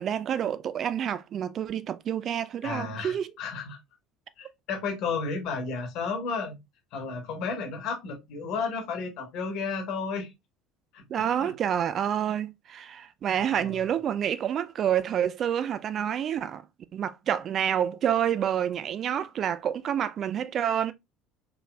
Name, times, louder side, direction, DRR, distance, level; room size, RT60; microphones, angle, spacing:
voice 1, 0.0-3.3 11.1-16.6 16.9-20.9, right 9 dB, 45° right, 0.4 m, -28 dB
voice 2, 2.6-3.8 4.4-6.6 6.9-10.3 10.9-11.5 13.4-13.9, left 5 dB, 55° left, 1.4 m, -33 dB
4.8 x 3.2 x 2.3 m
figure-of-eight pair, 65°, 0 cm